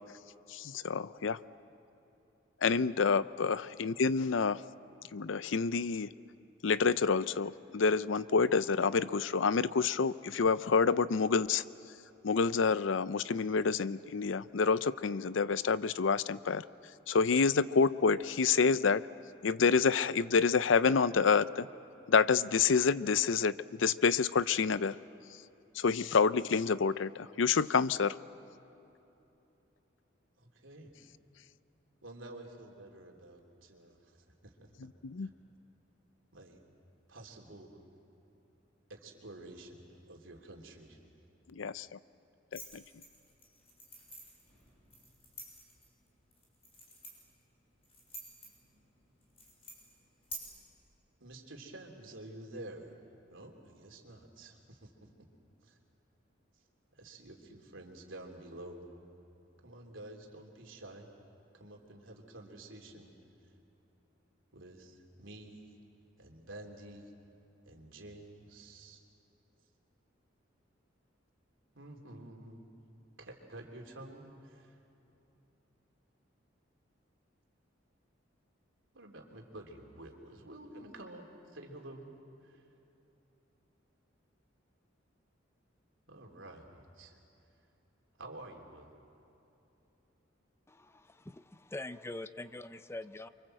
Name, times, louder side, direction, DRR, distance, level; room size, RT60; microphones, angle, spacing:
voice 1, 0.5-1.4 2.6-4.6 5.1-6.1 6.6-11.6 12.2-16.6 17.1-19.1 19.4-21.7 22.1-25.0 25.7-28.2 35.0-35.3 41.5-41.9 42.5-42.8, left 5 dB, 75° left, 16 dB, 0.5 m, -28 dB
voice 2, 30.4-30.9 32.0-34.7 35.2-35.3 36.3-36.6 37.1-37.7 38.9-41.0 51.2-53.0 53.3-55.1 55.6-55.8 56.9-58.8 59.6-61.1 61.5-63.1 64.5-65.7 66.2-67.1 67.6-69.0 71.7-72.6 73.2-74.8 78.9-82.0 82.4-82.7 86.1-87.2 88.2-88.9, right 1 dB, 85° right, 1 dB, 3.3 m, -50 dB
sound 1, 42.5-50.4, equal, 30° left, 6.7 m, -51 dB
voice 3, 90.7-93.3, left 2 dB, 15° left, 12 dB, 0.5 m, -44 dB
28.5 x 24.5 x 7.8 m, 3.0 s
head